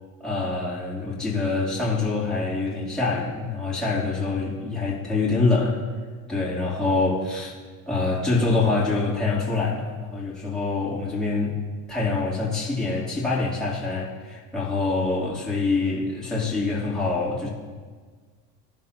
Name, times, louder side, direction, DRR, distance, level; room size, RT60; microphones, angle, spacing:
voice 1, 0.2-5.8 6.3-7.5 7.9-11.5 11.9-17.5, left 3 dB, ahead, -8 dB, 3.0 m, -25 dB
18.5 x 7.4 x 2.9 m, 1.5 s
supercardioid pair, 110°, 48 cm